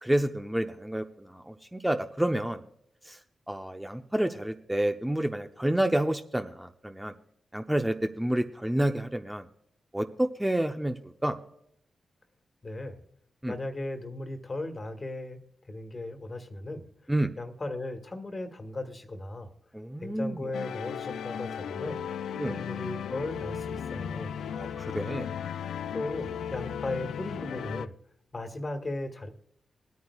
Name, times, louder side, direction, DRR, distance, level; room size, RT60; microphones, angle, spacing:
voice 1, 0.0-2.6 3.0-3.2 3.5-7.1 7.5-9.5 9.9-11.4 13.4-13.5 17.1-17.3 19.7-20.4 22.4-22.6 24.6-25.3, right 1 dB, 10° right, 6 dB, 0.7 m, -29 dB
voice 2, 12.6-13.0 13.5-15.4 15.7-16.9 17.4-19.5 20.0-22.0 22.4-24.4 25.9-27.9 28.3-29.3, left 2 dB, 40° left, 7 dB, 1.7 m, -36 dB
sound 1, 20.5-27.9, left 8 dB, 80° left, 0.3 m, -36 dB
21.0 x 9.3 x 2.4 m, 0.71 s
supercardioid pair, 40°, 0 cm